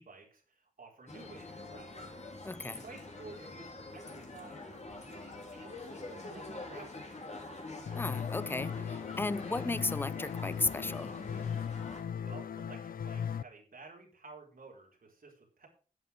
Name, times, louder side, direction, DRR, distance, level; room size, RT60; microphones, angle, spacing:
voice 1, 0.0-2.0 2.6-7.0 12.2-15.7, right 4 dB, 80° right, 4.4 m, -53 dB
sound 1, 1.1-12.0, left 2 dB, 50° left, 3.2 m, -46 dB
voice 2, 2.4-2.8 7.9-11.2, left 2 dB, 15° left, 0.5 m, -35 dB
sound 2, 7.9-13.4, left 8 dB, 80° left, 0.5 m, -38 dB
11.0 x 8.5 x 4.6 m
wide cardioid pair, 70°, 15 cm